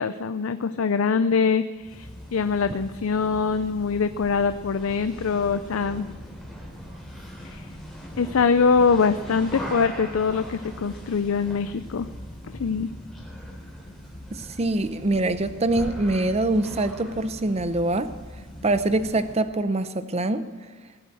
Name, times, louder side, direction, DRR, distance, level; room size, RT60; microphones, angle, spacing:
voice 1, 0.0-6.1 7.4-7.7 8.2-12.1 12.5-12.9, left 5 dB, 85° left, 11 dB, 0.5 m, -23 dB
sound 1, 1.7-19.5, equal, ahead, 3.6 m, -40 dB
voice 2, 14.3-18.2 18.6-20.5, right 2 dB, 30° right, 12 dB, 0.7 m, -24 dB
19.0 x 7.9 x 7.6 m, 1.5 s
head